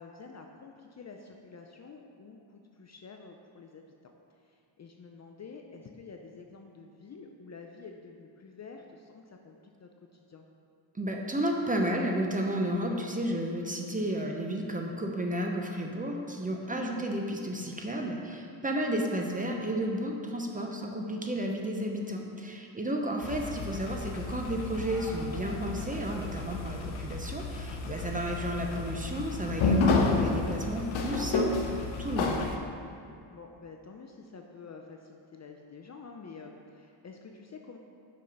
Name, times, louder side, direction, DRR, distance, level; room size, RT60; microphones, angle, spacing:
voice 1, 0.0-3.8 4.8-9.9 10.3-10.4 16.7-16.9 21.6-21.8 33.3-37.8, left 4 dB, 35° left, 3 dB, 0.5 m, -48 dB
voice 2, 10.9-32.4, right 1 dB, 15° right, 1 dB, 0.7 m, -32 dB
sound 1, 23.2-32.6, left 3 dB, 70° left, 0.9 m, -31 dB
5.6 x 5.4 x 5.1 m, 2.5 s
cardioid pair, 90°, 49 cm